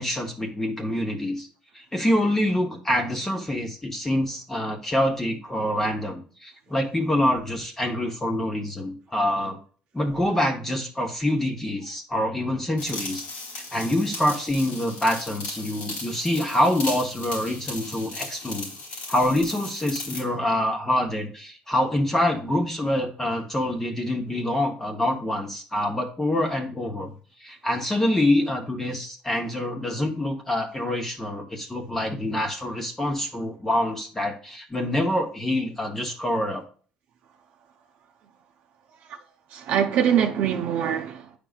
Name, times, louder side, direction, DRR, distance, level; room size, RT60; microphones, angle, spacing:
voice 1, 0.0-1.5 1.7-9.6 9.9-13.2 13.5-18.7 19.1-27.1 27.4-36.6, left 1 dB, 15° left, 0.9 m, -26 dB
sound 1, 12.8-20.3, left 2 dB, 80° left, 3.5 m, -37 dB
voice 2, 39.5-41.4, right 9 dB, 65° right, 0.7 m, -23 dB
8.9 x 5.1 x 2.4 m
cardioid pair, 125°, 3 cm